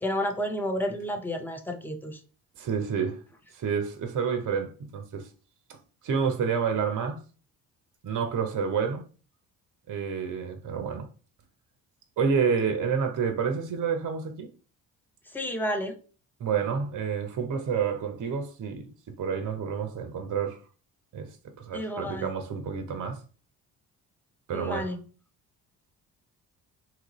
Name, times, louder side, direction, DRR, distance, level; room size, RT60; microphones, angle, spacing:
voice 1, 0.0-2.2 15.3-15.9 21.7-22.3 24.5-25.0, equal, 5° left, 0.6 m, -31 dB
voice 2, 2.6-3.2 3.5-5.3 6.0-7.2 8.0-9.0 9.9-11.1 12.2-14.5 16.4-20.6 21.1-21.3 21.6-23.2 24.5-24.9, right 6 dB, 40° right, 0.7 m, -29 dB
2.9 x 2.4 x 2.9 m
figure-of-eight pair, 45°, 50 cm